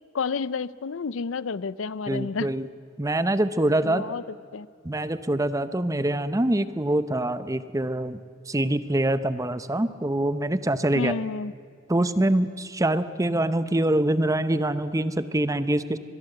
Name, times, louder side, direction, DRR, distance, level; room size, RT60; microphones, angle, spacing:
voice 1, 0.1-2.5 3.8-4.2 4.5-4.7 10.9-11.5, left 4 dB, 75° left, 18 dB, 0.5 m, -30 dB
voice 2, 2.1-2.7 3.0-4.0 4.8-8.2 8.5-11.2 11.9-16.0, right 1 dB, 15° right, 13 dB, 0.7 m, -24 dB
24.0 x 21.0 x 7.9 m, 2.1 s
head